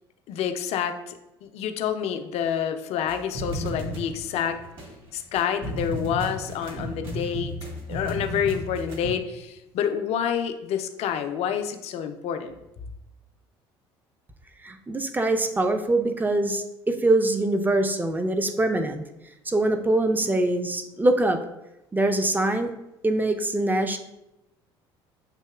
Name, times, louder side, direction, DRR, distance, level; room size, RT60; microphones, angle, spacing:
voice 1, 0.3-4.6 5.1-7.5 7.9-12.6, left 8 dB, 55° left, 7 dB, 0.5 m, -28 dB
sound 1, 3.1-9.1, equal, 45° right, 1.3 m, -34 dB
voice 2, 14.6-19.0 19.5-21.4 21.9-22.7 23.0-24.0, right 2 dB, 15° right, 7 dB, 0.5 m, -23 dB
7.4 x 2.8 x 2.3 m, 0.92 s
hypercardioid pair, 65°, 13 cm